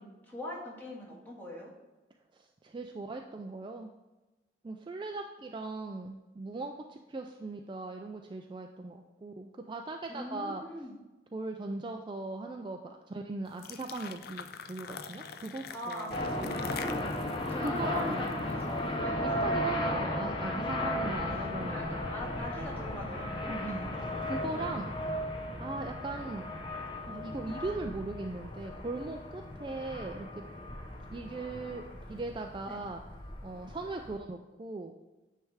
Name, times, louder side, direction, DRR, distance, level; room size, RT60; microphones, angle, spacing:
voice 1, 0.0-1.7 10.1-11.0 15.7-17.1 17.5-19.4 21.6-23.8 32.7-32.8, left 1 dB, 10° left, -4 dB, 1.7 m, -42 dB
voice 2, 2.3-3.9 4.6-10.6 11.3-16.7 17.4-18.2 19.2-22.1 23.5-23.9 24.2-24.9 25.6-26.5 27.0-30.4 31.1-31.8 32.1-33.0 33.4-34.9, right 3 dB, 25° right, 4 dB, 0.3 m, -39 dB
sound 1, 13.5-18.7, left 6 dB, 55° left, 0.4 m, -44 dB
sound 2, 16.1-34.2, left 1 dB, 30° left, 0.8 m, -35 dB
9.5 x 3.3 x 4.8 m, 1.1 s
head